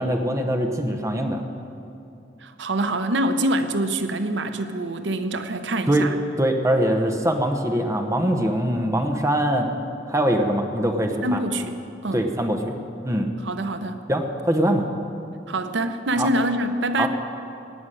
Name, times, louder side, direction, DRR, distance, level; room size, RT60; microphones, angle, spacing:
voice 1, 0.0-1.4 5.9-6.1 6.4-9.7 10.1-11.4 12.1-12.8 13.0-13.3 14.1-14.8 16.2-16.3 17.0-17.1, right 1 dB, 15° right, 4 dB, 1.1 m, -22 dB
voice 2, 2.4-6.1 11.2-12.2 13.4-14.1 15.5-17.1, right 1 dB, 80° right, 9 dB, 0.7 m, -25 dB
17.5 x 6.1 x 9.9 m, 2.7 s
head